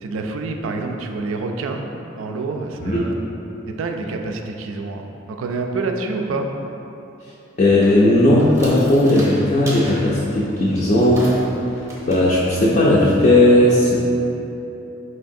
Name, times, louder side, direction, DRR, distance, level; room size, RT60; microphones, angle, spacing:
voice 1, 0.0-3.2 3.7-6.5, right 3 dB, 80° right, 3 dB, 0.3 m, -27 dB
voice 2, 2.8-3.1 7.6-11.3 12.1-14.0, left 1 dB, 40° left, -6 dB, 0.4 m, -16 dB
sound 1, 7.6-13.2, right 1 dB, 15° right, 0.6 m, -38 dB
4.4 x 3.2 x 2.6 m, 3.0 s
head